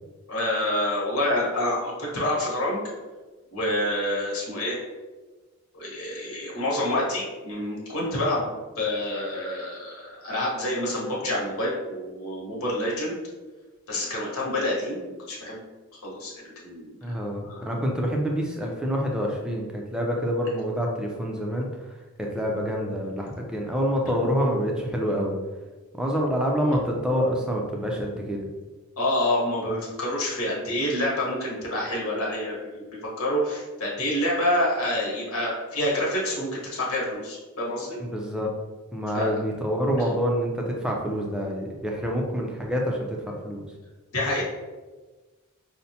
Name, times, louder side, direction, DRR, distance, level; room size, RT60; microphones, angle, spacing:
voice 1, 0.3-2.8 3.5-4.8 5.7-8.5 8.8-13.2 13.9-15.6 16.0-17.2 17.4-17.7 29.0-32.8 33.2-38.0 39.1-39.3 44.1-44.4, left 1 dB, 70° left, -4 dB, 1.1 m, -27 dB
voice 2, 17.0-21.7 22.2-25.4 26.0-28.5 38.0-38.5 38.9-43.6, equal, 5° right, -1 dB, 0.4 m, -27 dB
5.3 x 2.1 x 2.7 m, 1.3 s
head